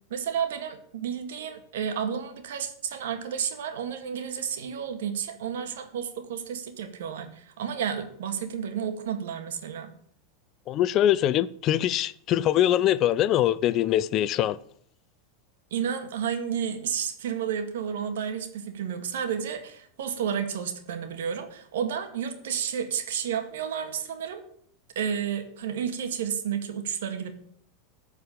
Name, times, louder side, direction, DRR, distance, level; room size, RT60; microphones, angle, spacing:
voice 1, 0.1-9.9 15.7-24.4 25.0-27.4, right 8 dB, 75° right, 2.0 m, -31 dB
voice 2, 10.7-14.6, left 12 dB, 45° left, 0.6 m, -23 dB
14.0 x 4.9 x 8.6 m
hypercardioid pair, 100°, 0 cm